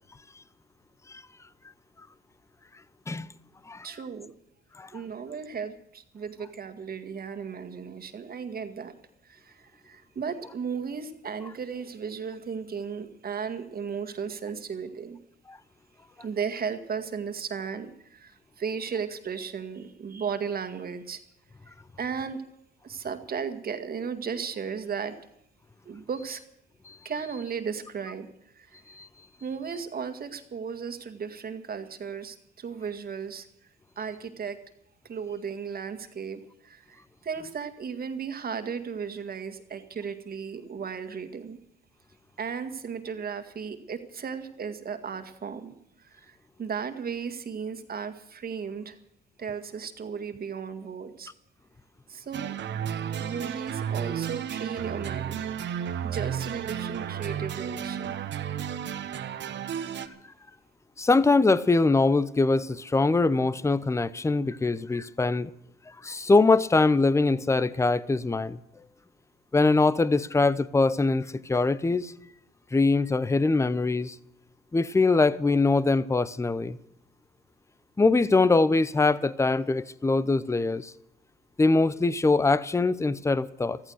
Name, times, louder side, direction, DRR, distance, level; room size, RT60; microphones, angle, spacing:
voice 1, 3.8-4.3 4.9-8.9 9.2-15.2 16.2-21.2 21.6-22.4 22.8-25.1 25.9-26.4 27.0-28.3 28.5-28.8 29.4-33.5 34.0-34.6 35.0-41.6 42.4-49.0 49.4-51.3 52.1-52.6 53.2-58.2, right 6 dB, 50° right, 2.0 m, -35 dB
sound 1, 52.3-60.1, right 8 dB, 65° right, 1.3 m, -33 dB
voice 2, 61.0-65.5 66.0-68.6 69.5-72.1 72.7-74.2 74.7-76.8 78.0-80.9 81.6-83.8, left 3 dB, 15° left, 0.7 m, -23 dB
14.5 x 14.5 x 6.5 m
cardioid pair, 90°, 20 cm